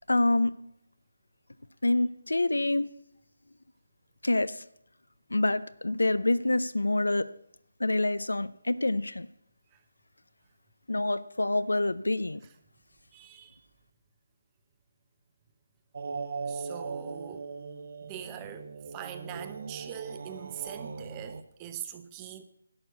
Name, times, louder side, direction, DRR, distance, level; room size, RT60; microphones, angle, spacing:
voice 1, 0.1-0.6 1.8-2.9 4.2-4.6 5.3-7.3 7.8-9.3 10.9-12.4, left 2 dB, 80° left, 0.6 m, -26 dB
voice 2, 13.1-13.6 16.5-17.5 18.0-22.4, right 10 dB, 20° right, 0.8 m, -42 dB
sound 1, 15.9-21.4, right 4 dB, 50° right, 1.0 m, -39 dB
11.5 x 6.1 x 8.2 m
figure-of-eight pair, 155°, 0 cm